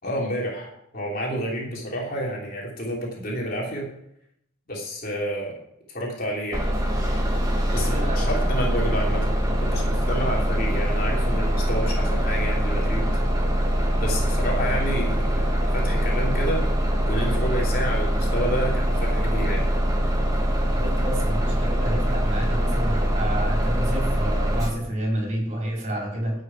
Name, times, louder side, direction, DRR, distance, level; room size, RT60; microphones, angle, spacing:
voice 1, 0.0-3.9 4.7-5.6 5.9-6.6 7.7-13.1 14.0-16.6 17.0-19.6, equal, 45° left, -3 dB, 3.4 m, -29 dB
Bus, 6.5-24.7, equal, 20° right, 1.7 m, -23 dB
voice 2, 7.6-8.3 20.6-26.3, right 1 dB, 35° right, -2 dB, 4.5 m, -29 dB
12.0 x 6.7 x 8.2 m, 0.76 s
head